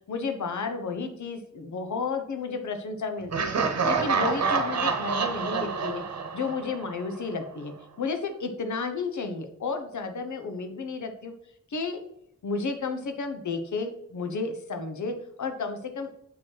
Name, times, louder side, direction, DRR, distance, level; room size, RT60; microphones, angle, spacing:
voice 1, 0.1-6.0 6.3-11.3 11.7-12.0 12.4-16.3, left 4 dB, 85° left, 7 dB, 0.9 m, -32 dB
Laughter, 3.3-7.2, right 5 dB, 60° right, 1.0 m, -27 dB
8.3 x 4.5 x 4.5 m, 0.76 s
wide cardioid pair, 125°, 29 cm